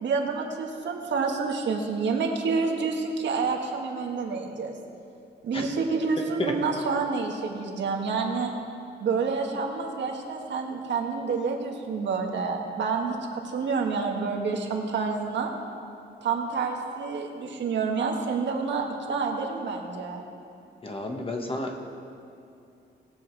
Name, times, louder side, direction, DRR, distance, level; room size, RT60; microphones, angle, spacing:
voice 1, 0.0-4.8 5.4-8.5 9.0-15.5 16.2-20.2, right 4 dB, 75° right, 1 dB, 1.5 m, -28 dB
voice 2, 20.8-21.9, left 2 dB, 30° left, 3 dB, 1.3 m, -31 dB
19.0 x 7.1 x 4.6 m, 2.6 s
cardioid pair, 115°, 19 cm